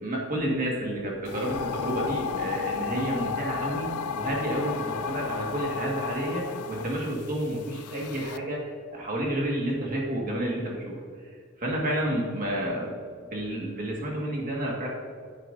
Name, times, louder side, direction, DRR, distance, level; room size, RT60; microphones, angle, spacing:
voice 1, 0.0-3.9 4.1-11.0 11.6-12.9 13.3-14.9, right 1 dB, 35° right, -2 dB, 1.7 m, -30 dB
sound 1, 1.2-8.4, left 6 dB, 85° left, 0.4 m, -33 dB
9.7 x 9.3 x 2.6 m, 2.1 s
head